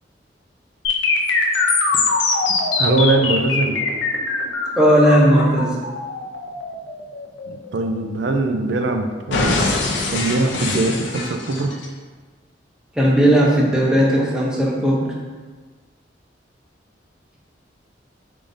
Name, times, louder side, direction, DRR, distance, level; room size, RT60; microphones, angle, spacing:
sound 1, 0.8-8.8 9.3-11.9, left 3 dB, 85° left, 0.6 m, -22 dB
voice 1, 2.5-3.8 7.5-9.7 10.1-11.7, right 2 dB, 75° right, 5 dB, 0.4 m, -22 dB
voice 2, 4.8-5.8 12.9-15.1, equal, 5° right, -4 dB, 0.6 m, -16 dB
4.8 x 3.7 x 2.6 m, 1.4 s
head